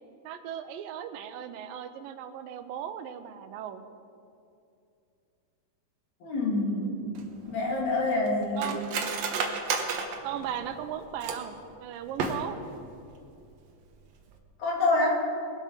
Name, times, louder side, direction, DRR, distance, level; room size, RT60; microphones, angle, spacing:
voice 1, 0.2-3.8 6.8-7.2 8.6-8.8 10.2-12.6, right 9 dB, 90° right, 10 dB, 2.4 m, -37 dB
voice 2, 6.2-7.2 7.5-8.8 14.6-15.2, left 2 dB, 60° left, -3 dB, 3.9 m, -27 dB
Cutlery silverware, 7.1-11.6 12.1-12.8 13.1-13.2 13.5-13.9 14.2-14.4, right 5 dB, 65° right, 1.9 m, -33 dB
21.0 x 8.1 x 5.8 m, 2.6 s
omnidirectional pair, 4.0 m